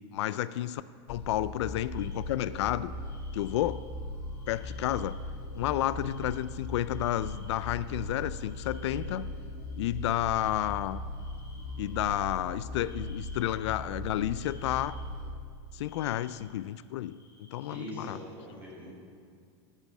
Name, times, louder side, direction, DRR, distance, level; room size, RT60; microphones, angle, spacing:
voice 1, 0.1-0.8 1.1-2.9 3.3-3.8 4.5-5.2 5.5-9.3 9.8-11.0 11.8-15.0 15.7-18.2, left 13 dB, 85° left, 16 dB, 0.4 m, -31 dB
sound 1, 1.1-15.3, left 1 dB, 45° left, 3.0 m, -39 dB
sound 2, 1.9-2.5 2.9-3.9 4.2-12.2 12.7-13.6 14.1-15.1 15.7-18.1, left 2 dB, 25° left, 3.5 m, -60 dB
voice 2, 17.6-18.9, equal, 10° right, -5 dB, 4.1 m, -43 dB
11.5 x 8.9 x 7.3 m, 2.2 s
supercardioid pair, 175°, 14 cm